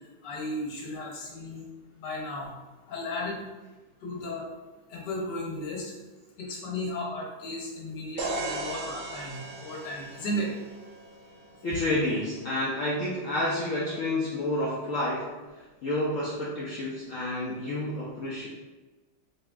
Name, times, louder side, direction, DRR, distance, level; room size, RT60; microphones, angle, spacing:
voice 1, 0.2-1.6 2.0-2.5 2.9-3.4 4.0-4.4 4.9-5.9 6.4-10.5, left 1 dB, 65° left, -1 dB, 1.3 m, -34 dB
sound 1, 8.2-12.0, right 2 dB, 85° right, 1.4 m, -37 dB
voice 2, 11.6-18.5, left 1 dB, 85° left, -5 dB, 0.7 m, -30 dB
5.1 x 2.8 x 2.3 m, 1.2 s
omnidirectional pair, 2.1 m